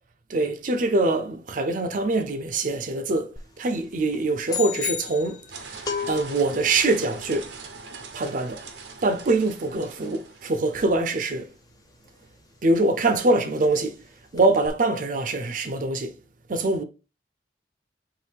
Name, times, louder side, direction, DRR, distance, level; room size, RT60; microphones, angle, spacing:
voice 1, 0.3-5.8 6.1-7.5 8.1-8.6 9.0-11.5 12.6-14.1 14.3-16.1 16.5-16.8, right 2 dB, 50° right, 0.5 m, -24 dB
sound 1, 3.4-3.6 3.9-12.5 12.7-13.0 13.2-14.1 14.3-14.7, left 5 dB, 20° left, 0.5 m, -38 dB
sound 2, 4.5-5.8, left 9 dB, 45° left, 1.0 m, -32 dB
sound 3, 5.5-11.3, right 4 dB, 80° right, 0.8 m, -42 dB
4.5 x 3.1 x 3.4 m
head